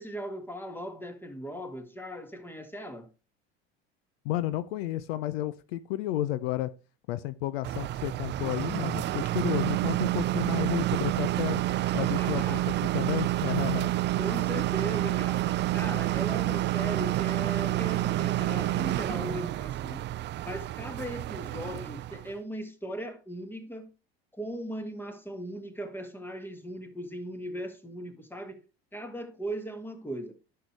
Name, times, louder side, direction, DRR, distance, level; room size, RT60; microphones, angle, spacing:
voice 1, 0.0-3.1 12.0-12.7 14.2-20.1 20.4-23.9 24.3-28.6 28.9-30.4, right 1 dB, 5° left, 1.7 m, -38 dB
voice 2, 4.2-6.7 7.1-11.6 11.9-12.6 12.9-13.9, left 14 dB, 80° left, 0.6 m, -32 dB
sound 1, 7.6-22.3, right 15 dB, 40° right, 0.4 m, -29 dB
11.0 x 6.7 x 3.3 m
hypercardioid pair, 75°, 30 cm